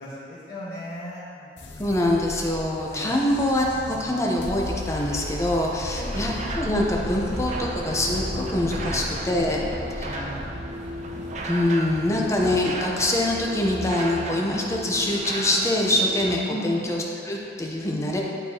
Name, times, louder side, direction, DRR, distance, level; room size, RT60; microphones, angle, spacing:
voice 1, 0.0-2.0 2.9-3.2 5.9-6.1 8.7-9.0 10.0-10.9 16.5-16.9, equal, 45° left, -11 dB, 1.2 m, -37 dB
sound 1, 1.6-15.8, left 1 dB, 75° left, 0.7 m, -37 dB
voice 2, 1.8-9.7 10.0-10.2 11.5-18.2, left 1 dB, 15° left, -2 dB, 0.8 m, -24 dB
sound 2, 3.6-9.0, equal, 25° right, 1.6 m, -40 dB
sound 3, 6.1-16.4, right 1 dB, 40° right, 0.5 m, -35 dB
11.0 x 4.5 x 2.9 m, 2.6 s
head